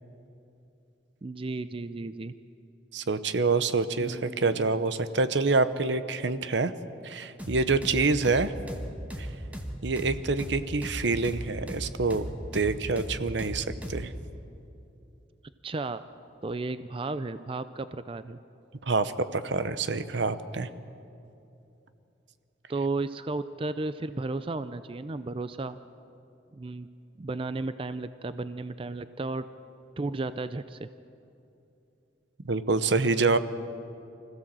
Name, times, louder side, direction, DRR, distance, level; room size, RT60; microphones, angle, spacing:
voice 1, 1.2-2.4 4.0-4.6 15.6-16.0 16.4-18.4 22.7-25.8 26.5-26.9 27.2-29.5 30.0-30.9, right 3 dB, 30° right, 12 dB, 0.4 m, -34 dB
voice 2, 2.9-6.7 7.0-8.5 9.2-9.3 9.8-12.3 12.5-14.1 18.9-20.7 32.4-33.4, right 3 dB, 70° right, 12 dB, 0.9 m, -26 dB
sound 1, 7.4-14.1, equal, 10° right, 1.5 m, -37 dB
25.0 x 16.0 x 7.6 m, 2.8 s
head